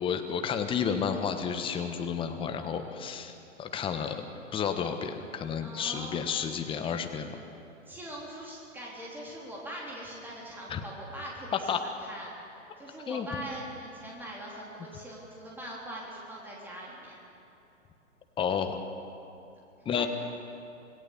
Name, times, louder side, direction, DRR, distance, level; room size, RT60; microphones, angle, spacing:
voice 1, 0.0-3.3 3.6-4.2 4.5-7.4 10.7-10.8 11.7-11.8 13.1-13.3 18.4-18.8 19.8-20.1, left 7 dB, 15° left, 6 dB, 1.3 m, -31 dB
voice 2, 5.6-6.2 7.9-12.3 12.8-17.2 20.0-20.1, right 1 dB, 5° right, -4 dB, 3.6 m, -42 dB
27.0 x 17.0 x 7.2 m, 2.7 s
figure-of-eight pair, 115°, 38 cm